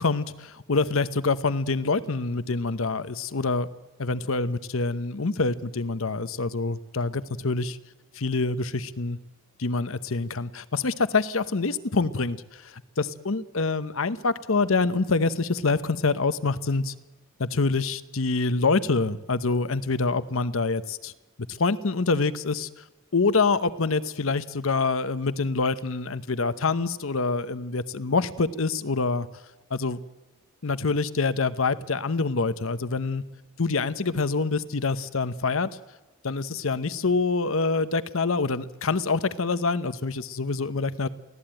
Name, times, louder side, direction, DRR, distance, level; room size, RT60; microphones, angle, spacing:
voice 1, 0.0-3.7 4.0-7.8 8.1-9.2 9.6-16.9 17.4-21.1 21.5-22.7 23.1-29.3 29.7-30.0 30.6-33.2 33.6-35.7 36.2-41.1, left 3 dB, 65° left, 14 dB, 0.9 m, -26 dB
23.5 x 16.0 x 9.0 m, 1.1 s
head